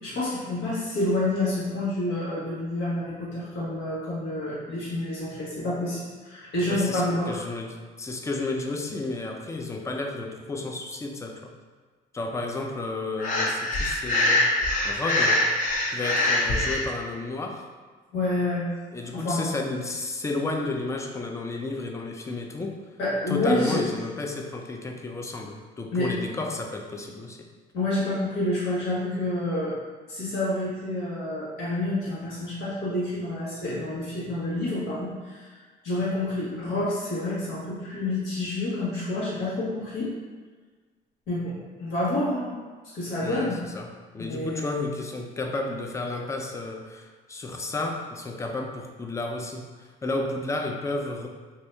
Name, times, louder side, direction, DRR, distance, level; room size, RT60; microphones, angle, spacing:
voice 1, 0.0-7.4 18.1-18.7 19.1-19.5 23.0-23.9 25.9-26.1 27.7-29.7 30.1-35.5 35.8-40.1 41.3-42.6 42.9-43.6 44.2-44.8, left 1 dB, 90° left, -8 dB, 1.4 m, -28 dB
voice 2, 6.7-11.5 12.1-14.5 14.8-15.5 15.9-17.7 18.9-22.8 23.3-27.5 43.2-51.3, left 2 dB, 15° left, 3 dB, 0.4 m, -32 dB
Breathing, 13.2-16.8, left 1 dB, 50° left, 0.6 m, -24 dB
2.8 x 2.7 x 3.3 m, 1.4 s
cardioid pair, 110°, 17 cm